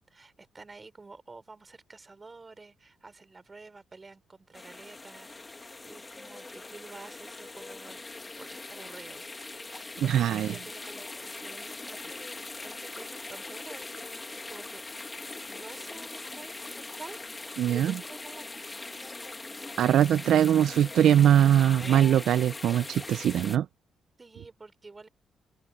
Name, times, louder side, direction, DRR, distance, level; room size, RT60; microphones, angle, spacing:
voice 1, 0.1-8.0 8.4-9.3 10.0-12.1 12.6-14.8 15.5-17.4 17.7-19.8 24.2-25.1, right 3 dB, 25° right, 3.7 m, -49 dB
sound 1, 4.5-23.6, left 3 dB, 20° left, 1.9 m, -41 dB
voice 2, 10.0-10.5 17.6-17.9 19.8-23.7, right 10 dB, 75° right, 0.4 m, -22 dB
open air
cardioid pair, 90°, 0 cm